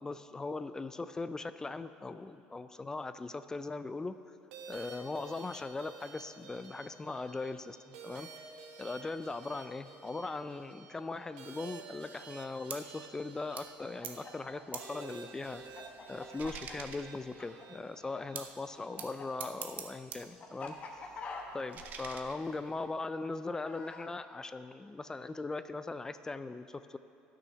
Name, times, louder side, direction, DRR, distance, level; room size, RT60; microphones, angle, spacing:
voice 1, 0.0-4.2 4.7-8.3 8.8-15.8 16.1-20.8 21.5-27.0, left 3 dB, 15° left, 12 dB, 0.4 m, -40 dB
sound 1, 4.5-19.0, right 5 dB, 90° right, 1.1 m, -52 dB
sound 2, 12.7-13.0 13.6-13.8 14.0-14.3 14.7-15.0 15.4-17.5 18.4-18.6 19.0-20.3 20.6-22.9, right 7 dB, 50° right, 0.8 m, -47 dB
Chicken rooster, 13.8-18.2 18.4-24.1, left 4 dB, 40° left, 1.2 m, -46 dB
12.5 x 6.3 x 5.6 m, 2.7 s
supercardioid pair, 100°, 4 cm